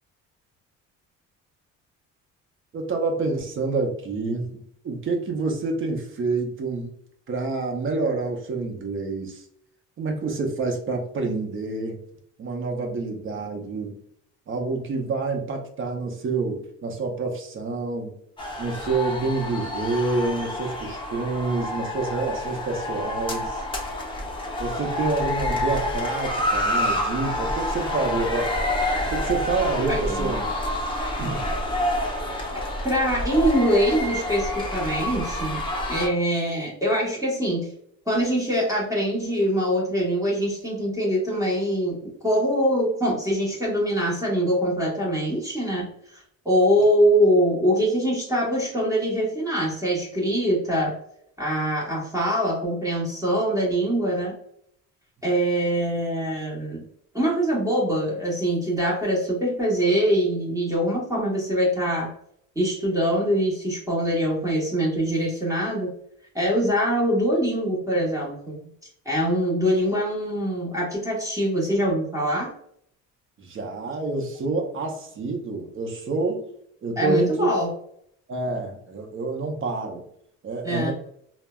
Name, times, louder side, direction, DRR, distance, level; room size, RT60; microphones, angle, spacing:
voice 1, 2.7-4.6 4.8-6.9 7.3-9.4 10.0-12.0 12.4-13.9 14.5-18.1 18.6-23.6 24.6-28.6 29.1-30.5 31.2-31.5 73.4-76.4 76.8-77.5 78.3-80.0 80.4-80.9, right 3 dB, 40° right, 3 dB, 0.7 m, -27 dB
sound 1, 18.4-36.1, left 1 dB, 15° left, 0.6 m, -28 dB
voice 2, 29.9-30.3 32.5-35.6 35.9-37.7 38.1-51.0 51.4-54.3 55.2-56.8 57.1-62.1 62.5-65.9 66.3-68.6 69.0-72.5 77.0-77.7 80.6-80.9, equal, 10° right, -4 dB, 1.0 m, -23 dB
3.2 x 2.1 x 2.3 m, 0.69 s
cardioid pair, 110°, 32 cm